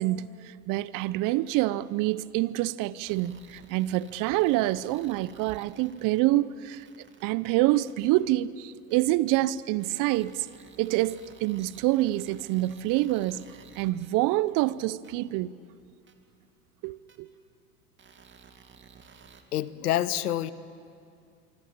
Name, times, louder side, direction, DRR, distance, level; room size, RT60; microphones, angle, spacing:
voice 1, 0.0-6.9 7.2-10.5 10.8-13.4 13.8-15.5 16.8-17.3, right 16 dB, 45° right, 0.8 m, -26 dB
sound 1, 3.0-6.2 6.7-7.2 7.9-8.0 8.9-9.0 9.8-14.1 15.0-15.1 16.1-16.2 17.1-17.2 18.0-19.4, right 6 dB, 25° right, 2.6 m, -54 dB
voice 2, 19.5-20.5, left 12 dB, 75° left, 1.1 m, -27 dB
25.5 x 25.0 x 8.8 m
hypercardioid pair, 90°, 46 cm